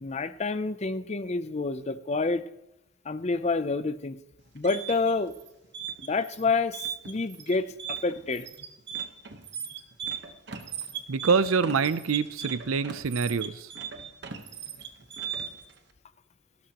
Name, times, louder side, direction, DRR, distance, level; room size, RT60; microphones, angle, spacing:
voice 1, 0.0-2.4 3.1-4.2 4.5-5.3 6.0-8.5, left 3 dB, 30° left, 12 dB, 0.5 m, -28 dB
sound 1, 4.4-15.7, right 8 dB, 55° right, 1.1 m, -38 dB
voice 2, 11.1-13.7, right 5 dB, 90° right, 15 dB, 0.6 m, -25 dB
16.5 x 12.5 x 3.0 m, 0.89 s
head